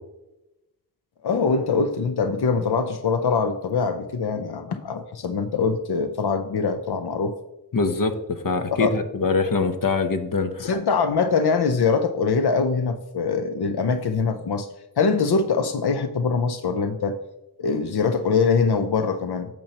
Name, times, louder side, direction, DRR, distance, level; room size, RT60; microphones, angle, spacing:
voice 1, 1.2-7.3 8.7-8.9 10.6-14.7 15.0-17.2 17.6-19.5, left 5 dB, 90° left, 8 dB, 0.6 m, -23 dB
voice 2, 7.7-10.7, left 4 dB, 60° left, 8 dB, 0.9 m, -24 dB
8.6 x 7.0 x 2.9 m, 0.95 s
wide cardioid pair, 75°, 37 cm